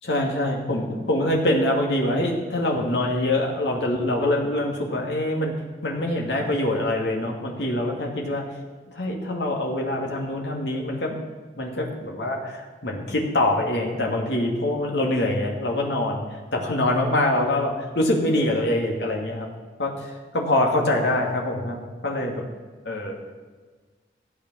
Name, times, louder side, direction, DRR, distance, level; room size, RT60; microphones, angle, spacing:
voice 1, 0.0-8.4 8.9-11.2 11.6-19.5 19.8-22.4 22.8-23.2, left 1 dB, 85° left, 0 dB, 2.5 m, -24 dB
15.0 x 8.6 x 6.4 m, 1.4 s
head